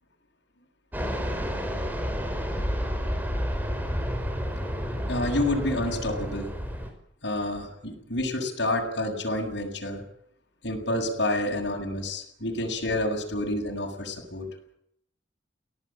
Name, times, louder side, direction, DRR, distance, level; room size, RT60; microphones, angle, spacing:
Fixed-wing aircraft airplane, 0.9-6.9, equal, 10° right, 5.0 m, -30 dB
voice 1, 5.1-6.5 7.2-10.0 10.6-14.5, left 1 dB, 65° left, -1 dB, 7.5 m, -29 dB
25.0 x 18.0 x 9.0 m, 0.71 s
head